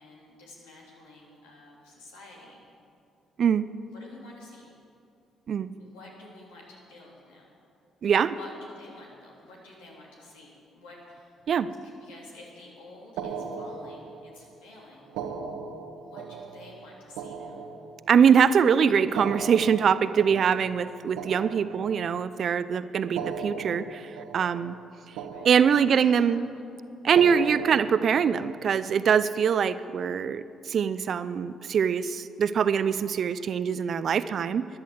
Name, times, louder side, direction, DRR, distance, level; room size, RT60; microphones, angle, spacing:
voice 1, 0.0-2.6 3.9-4.7 5.8-7.6 8.3-11.4 11.8-15.1 15.9-17.7 25.3-26.4, left 2 dB, 85° left, -3 dB, 3.4 m, -50 dB
voice 2, 8.0-8.4 11.5-11.7 18.1-24.8 25.4-26.5 27.0-34.7, right 7 dB, 60° right, 14 dB, 0.5 m, -23 dB
sound 1, 13.2-14.4 15.0-18.4 19.0-22.3 23.0-24.9 25.2-26.2 27.0-28.9, right 5 dB, 85° right, 1.4 m, -38 dB
13.5 x 10.5 x 7.9 m, 2.5 s
hypercardioid pair, 55°, 0 cm